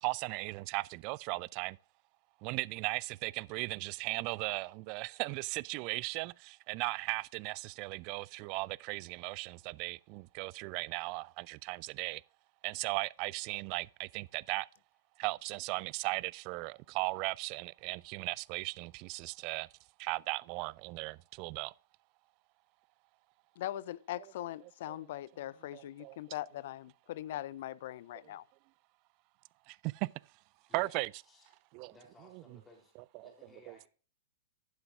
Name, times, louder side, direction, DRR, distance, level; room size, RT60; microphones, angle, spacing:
voice 1, 0.0-1.8 2.4-12.2 12.6-14.7 15.2-19.7 20.0-21.7 24.9-25.0 25.7-26.2 29.7-30.1 30.7-31.1 31.7-31.9 33.1-33.3 33.7-33.8, right 25 dB, 40° right, 0.3 m, -37 dB
voice 2, 23.6-28.4, left 13 dB, 55° left, 0.4 m, -41 dB
voice 3, 30.7-31.6 31.9-32.9 33.2-33.9, left 2 dB, 15° left, 3.3 m, -59 dB
11.0 x 9.8 x 2.5 m
figure-of-eight pair, 105°, 0 cm